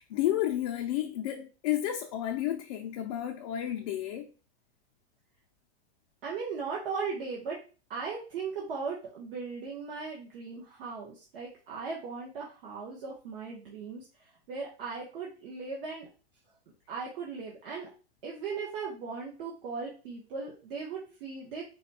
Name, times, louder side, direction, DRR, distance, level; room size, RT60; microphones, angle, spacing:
voice 1, 0.0-4.3, left 12 dB, 35° left, 0.4 m, -31 dB
voice 2, 6.2-7.6 7.9-14.1 14.5-16.1 16.9-17.9 18.2-21.6, right 5 dB, 55° right, 1.2 m, -38 dB
4.1 x 2.3 x 4.1 m
supercardioid pair, 160°, 33 cm